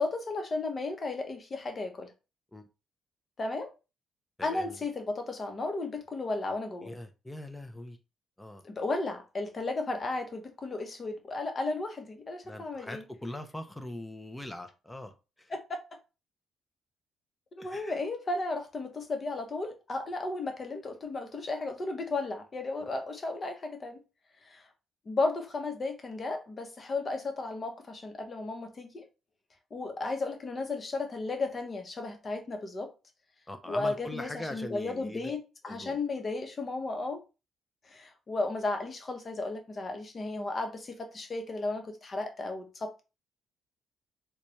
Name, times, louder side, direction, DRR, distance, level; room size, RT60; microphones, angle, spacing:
voice 1, 0.0-2.1 3.4-3.7 4.4-6.9 8.6-13.0 15.5-15.6 17.6-24.0 24.5-24.6 25.1-29.0 29.7-32.9 33.7-37.2 37.9-43.0, left 3 dB, 35° left, 0.9 m, -34 dB
voice 2, 4.4-4.9 6.8-8.0 8.4-8.6 12.4-15.5 17.6-18.0 22.8-23.0 33.5-35.4 35.7-36.0, left 1 dB, 10° left, 0.6 m, -42 dB
4.0 x 2.3 x 3.1 m
cardioid pair, 90°, 0 cm